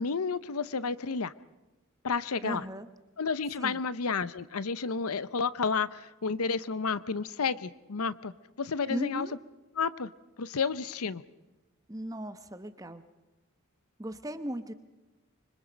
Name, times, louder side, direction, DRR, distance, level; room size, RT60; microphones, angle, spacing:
voice 1, 0.0-1.3 2.0-2.6 3.2-8.3 8.6-9.3 9.7-10.1 10.4-11.2, left 5 dB, 85° left, 17 dB, 0.7 m, -31 dB
voice 2, 2.4-2.9 3.6-3.8 8.9-9.3 11.9-13.0 14.0-14.7, right 1 dB, 15° right, 10 dB, 1.0 m, -37 dB
25.5 x 25.0 x 5.2 m, 1.1 s
head